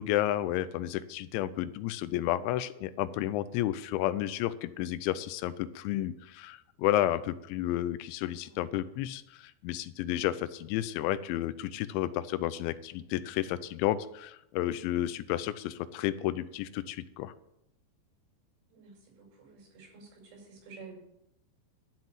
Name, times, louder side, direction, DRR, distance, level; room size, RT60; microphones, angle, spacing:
voice 1, 0.0-17.3, left 13 dB, 85° left, 15 dB, 2.9 m, -31 dB
voice 2, 8.4-9.0 18.7-21.0, right 4 dB, 90° right, -1 dB, 7.8 m, -52 dB
12.5 x 5.9 x 9.1 m, 0.81 s
omnidirectional pair, 5.4 m